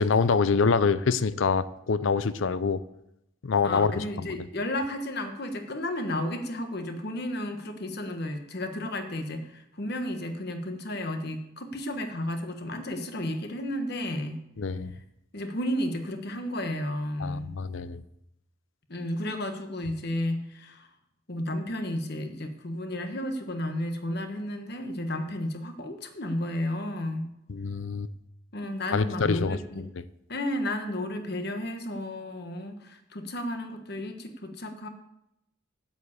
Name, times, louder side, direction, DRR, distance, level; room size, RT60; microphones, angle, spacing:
voice 1, 0.0-2.8 3.4-4.3 14.6-14.9 17.2-18.0 27.5-28.1 28.9-29.8, left 5 dB, 70° left, 15 dB, 0.5 m, -25 dB
voice 2, 3.6-14.4 15.3-17.5 18.9-20.9 21.3-27.3 28.5-29.8 30.3-34.9, left 1 dB, 50° left, 6 dB, 1.3 m, -33 dB
8.0 x 7.2 x 8.2 m, 0.83 s
head